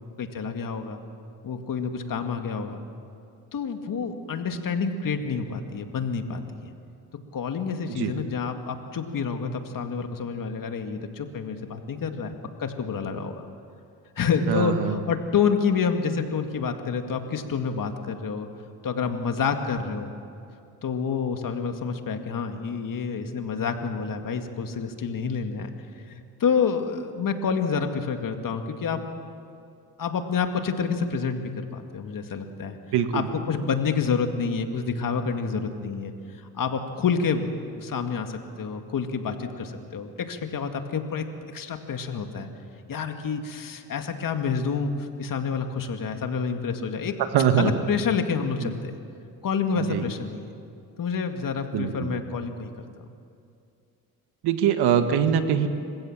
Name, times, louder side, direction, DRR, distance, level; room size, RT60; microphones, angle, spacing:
voice 1, 0.2-1.0 1.4-2.8 3.5-6.7 7.3-12.3 12.6-13.4 14.2-18.5 18.8-20.1 20.8-25.7 26.1-29.0 30.0-32.8 33.1-36.1 36.5-41.2 41.5-42.5 42.9-47.1 47.6-48.9 49.4-50.5 51.0-52.9, left 5 dB, 55° left, 6 dB, 2.2 m, -28 dB
voice 2, 14.5-15.0 32.9-33.3 47.3-47.7 48.6-48.7 49.9-50.0 51.7-52.2 54.4-55.7, right 8 dB, 80° right, 8 dB, 1.7 m, -23 dB
26.5 x 16.0 x 7.4 m, 2.5 s
supercardioid pair, 70°, 39 cm